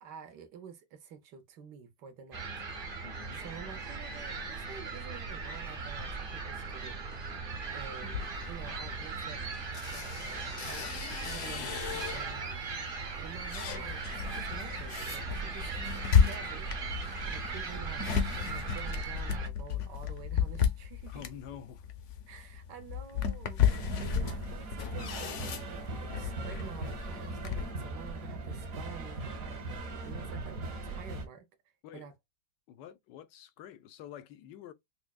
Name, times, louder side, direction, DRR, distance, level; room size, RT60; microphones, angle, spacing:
voice 1, 0.0-3.1 3.3-7.0 7.7-9.5 9.9-21.2 22.3-25.3 25.7-31.5 31.9-32.1, right 7 dB, 75° right, 1.4 m, -49 dB
sound 1, 2.3-19.5, right 4 dB, 40° right, 0.8 m, -39 dB
voice 2, 3.0-3.4 21.1-21.9 31.8-32.1 32.7-34.7, left 9 dB, 85° left, 1.3 m, -48 dB
sound 2, 8.0-12.5 13.0-27.7, left 7 dB, 60° left, 0.8 m, -33 dB
sound 3, 23.6-31.2, right 2 dB, 60° right, 1.4 m, -39 dB
5.9 x 2.1 x 2.3 m
omnidirectional pair, 1.9 m